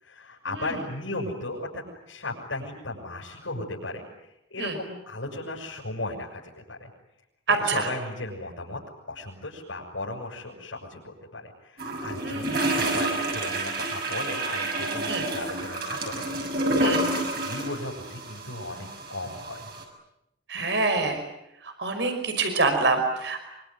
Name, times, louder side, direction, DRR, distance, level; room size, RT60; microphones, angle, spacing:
voice 1, 0.0-6.9 7.6-8.8 9.1-16.3 16.8-19.7 20.6-20.7, left 2 dB, 85° left, -3 dB, 7.1 m, -36 dB
voice 2, 7.5-7.9 12.2-12.6 15.1-15.2 16.8-17.0 20.5-21.2 21.6-23.4, right 3 dB, 70° right, 6 dB, 5.3 m, -26 dB
sound 1, 11.8-19.8, right 2 dB, 55° right, 6.9 m, -29 dB
26.0 x 25.0 x 9.3 m, 0.86 s
head